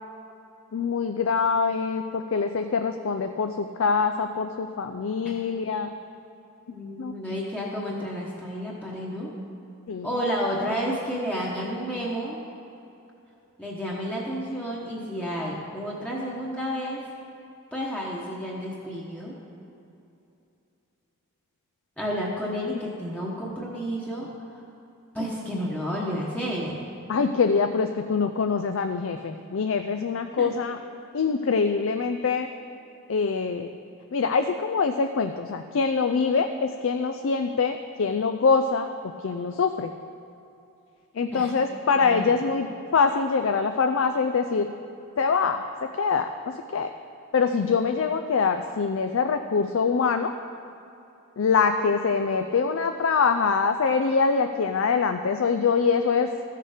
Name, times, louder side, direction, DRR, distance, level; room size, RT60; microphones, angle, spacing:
voice 1, 0.7-5.9 7.0-7.1 9.9-10.1 22.7-22.8 27.1-30.8 31.1-32.5 33.1-33.7 34.1-38.9 39.2-39.9 41.2-44.8 45.2-45.6 46.0-46.3 46.7-46.9 47.3-50.3 51.4-56.3, left 5 dB, 60° left, 7 dB, 0.4 m, -24 dB
voice 2, 6.7-9.3 10.0-12.4 13.6-17.0 17.7-19.3 22.0-24.6 25.1-26.8 30.4-30.5 41.3-41.5 41.9-42.4, equal, 5° left, -5 dB, 1.0 m, -31 dB
14.0 x 6.6 x 5.0 m, 2.8 s
head